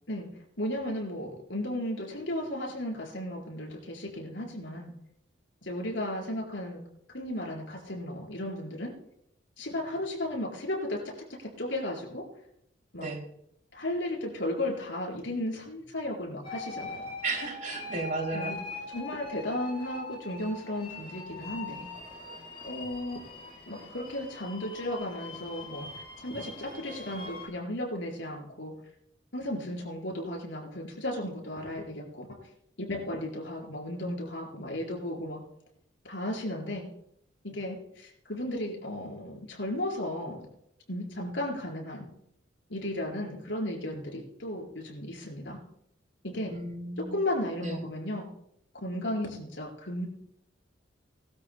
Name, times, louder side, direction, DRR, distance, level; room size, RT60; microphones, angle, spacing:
voice 1, 0.6-4.9 5.6-6.8 7.1-8.9 9.6-11.0 11.6-12.2 12.9-13.1 13.7-17.0 18.3-18.5 18.9-21.9 22.6-23.2 23.7-28.7 29.3-32.3 32.8-35.4 36.0-36.9 37.4-40.4 40.9-42.0 42.7-45.6 46.2-46.5 47.1-48.3 48.8-50.1, left 1 dB, 70° left, 0 dB, 4.8 m, -34 dB
sound 1, 16.4-27.5, left 3 dB, 30° left, 3.5 m, -42 dB
voice 2, 17.2-18.6 46.5-47.2 47.6-47.8, right 3 dB, 45° right, 2 dB, 2.9 m, -34 dB
21.0 x 13.0 x 2.2 m, 0.74 s
head